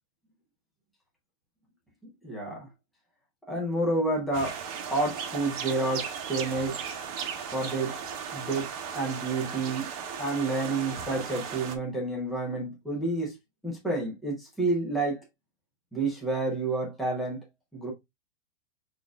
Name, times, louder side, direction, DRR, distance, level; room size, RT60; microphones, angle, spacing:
voice 1, 2.2-2.7 3.5-4.6 4.9-6.8 7.5-8.0 8.3-9.9 10.2-13.4 13.6-15.2 15.9-17.4 17.7-17.9, right 2 dB, ahead, 0.4 m, -29 dB
sound 1, 4.3-11.8, right 7 dB, 30° right, 0.7 m, -36 dB
6.0 x 2.5 x 3.4 m
hypercardioid pair, 155°, 37 cm